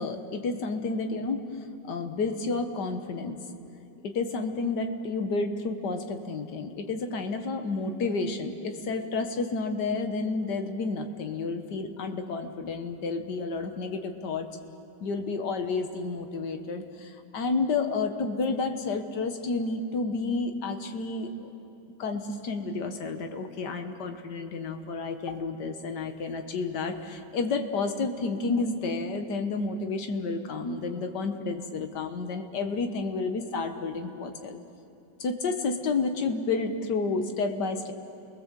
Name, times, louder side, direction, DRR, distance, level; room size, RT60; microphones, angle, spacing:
voice 1, 0.0-1.5 1.8-3.4 4.0-14.5 15.0-21.5 22.0-34.6 35.2-37.9, left 3 dB, 70° left, 7 dB, 1.9 m, -30 dB
30.0 x 20.0 x 7.5 m, 2.7 s
omnidirectional pair, 1.9 m